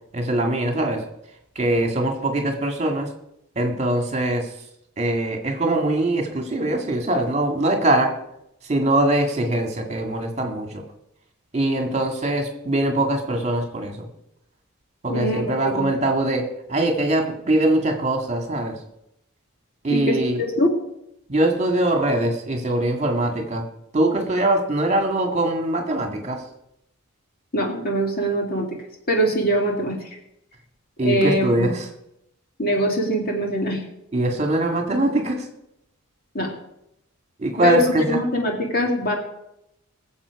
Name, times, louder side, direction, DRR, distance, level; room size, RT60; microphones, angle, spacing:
voice 1, 0.1-1.0 1.6-3.1 3.6-4.5 5.0-8.1 8.7-10.8 11.5-14.1 15.0-18.8 19.8-20.4 21.3-23.7 23.9-26.4 31.0-31.7 34.1-35.4 37.4-38.2, right 1 dB, 30° right, 3 dB, 1.9 m, -22 dB
voice 2, 15.1-15.9 19.9-20.7 27.5-28.8 29.1-30.1 31.0-31.7 32.6-33.8 36.3-36.5 37.6-39.2, equal, 40° left, 1 dB, 2.3 m, -23 dB
20.5 x 7.6 x 4.8 m, 0.81 s
head